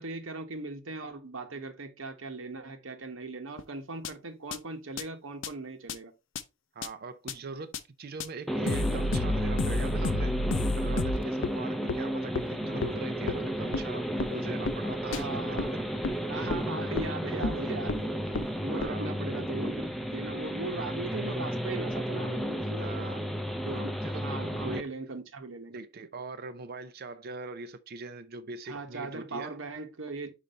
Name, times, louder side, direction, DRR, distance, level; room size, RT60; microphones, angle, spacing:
voice 1, 0.0-6.1 15.1-15.9 16.3-18.2 18.6-19.8 20.1-23.1 23.7-23.9 24.2-25.8 28.7-30.3, right 3 dB, 90° right, 1.0 m, -39 dB
sound 1, 3.6-3.7 4.1-4.2 4.5-4.6 5.0-5.1 5.4-5.5 5.9-6.0 6.4-6.5 6.8-6.9 7.3-7.4 7.7-7.8 8.2-8.3 8.7-11.5 11.9-12.0 12.4-12.5 12.8-12.9 13.3-13.4 13.7-13.8 14.2-14.3 14.7-14.8 15.1-15.2 15.6-15.7 16.0-16.1 16.5-16.6 17.0-17.1 17.4-17.6 17.9-18.0 18.3-18.4 18.8-18.9, left 2 dB, 70° left, 0.6 m, -30 dB
voice 2, 6.7-10.4 10.8-15.3 16.4-16.5 18.7-19.1 22.8-23.3 24.0-24.9 25.7-29.6, right 3 dB, 50° right, 0.5 m, -41 dB
sound 2, 8.5-24.8, equal, ahead, 0.6 m, -33 dB
5.2 x 4.9 x 4.1 m
head